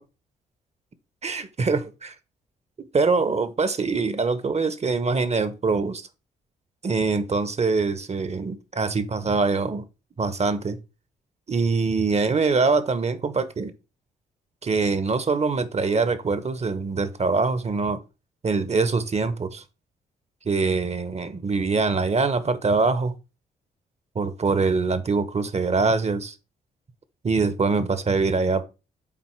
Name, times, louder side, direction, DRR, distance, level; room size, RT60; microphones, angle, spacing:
voice 1, 1.2-1.8 2.9-6.1 6.8-9.8 10.2-10.8 11.5-13.7 14.6-18.0 18.4-19.6 20.5-23.1 24.1-26.3 27.2-28.6, right 4 dB, 35° right, 0.9 m, -23 dB
7.5 x 4.2 x 4.5 m
hypercardioid pair, 45°, 19 cm